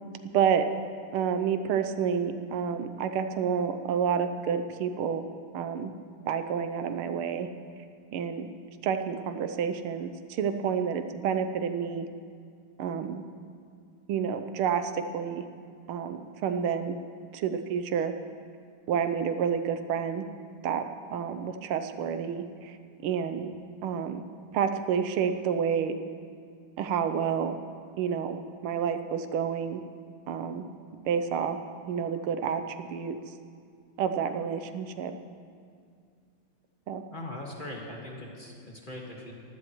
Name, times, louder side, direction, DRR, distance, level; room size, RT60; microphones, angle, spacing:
voice 1, 0.3-0.7 1.1-5.3 5.5-5.9 6.3-7.5 8.1-8.5 8.8-12.1 12.8-13.2 14.1-15.4 15.9-17.0 17.3-18.1 18.9-20.3 20.6-22.8 23.0-23.6 23.8-24.2 24.5-26.0 26.8-27.6 28.0-28.4 28.6-29.8 30.3-30.7 31.0-31.6 31.9-33.2 34.0-35.1 36.9-37.0, right 7 dB, 85° right, 9 dB, 1.6 m, -29 dB
voice 2, 37.1-39.3, left 1 dB, 25° left, -2 dB, 1.7 m, -40 dB
23.0 x 15.5 x 3.1 m, 2.2 s
omnidirectional pair, 2.3 m